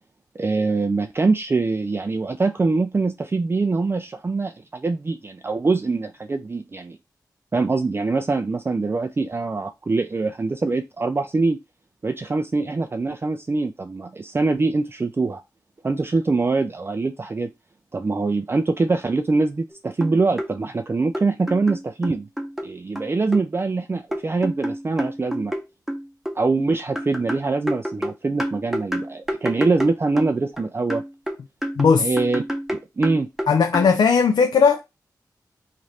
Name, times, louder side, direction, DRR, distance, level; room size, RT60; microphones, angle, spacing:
voice 1, 0.4-7.0 7.5-11.6 12.0-15.4 15.8-17.5 17.9-22.3 22.6-25.5 26.3-31.0 32.0-32.4 32.7-33.3, right 3 dB, 30° right, 0.3 m, -23 dB
sound 1, 19.7-19.8 20.0-20.5 21.1-22.7 23.0-23.5 24.1-26.4 27.0-30.6 30.9-33.9, equal, 5° right, 0.8 m, -28 dB
voice 2, 31.8-32.1 33.5-34.8, left 5 dB, 80° left, 0.4 m, -17 dB
3.1 x 2.5 x 4.1 m
cardioid pair, 50°, 7 cm